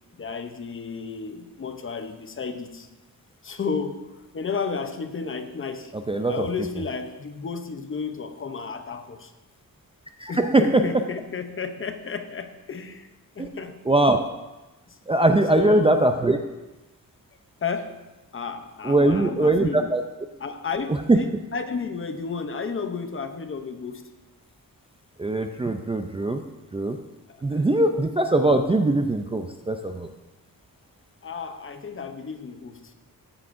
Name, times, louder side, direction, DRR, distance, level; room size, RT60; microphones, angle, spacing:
voice 1, 0.2-2.9 3.4-5.9 6.3-9.3 10.3-13.1 13.4-13.8 14.9-15.0 15.5-16.0 17.6-18.0 18.3-19.9 20.4-24.1 27.3-27.6 31.2-32.9, left 5 dB, 35° left, 8 dB, 0.7 m, -32 dB
voice 2, 5.9-6.5 10.2-11.0 13.4-13.5 13.9-14.2 15.1-16.4 18.8-20.0 20.9-21.2 25.2-26.4 26.7-27.0 27.4-30.1, right 2 dB, 15° right, 5 dB, 0.4 m, -21 dB
14.0 x 9.7 x 2.6 m, 1.1 s
wide cardioid pair, 175°, 36 cm